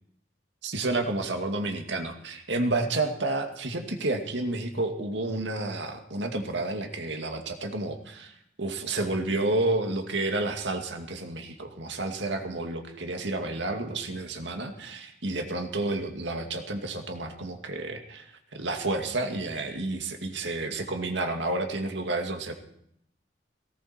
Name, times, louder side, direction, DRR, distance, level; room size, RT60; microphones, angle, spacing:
voice 1, 0.6-22.5, right 2 dB, 80° right, 4 dB, 2.2 m, -30 dB
18.0 x 18.0 x 4.4 m, 0.72 s
head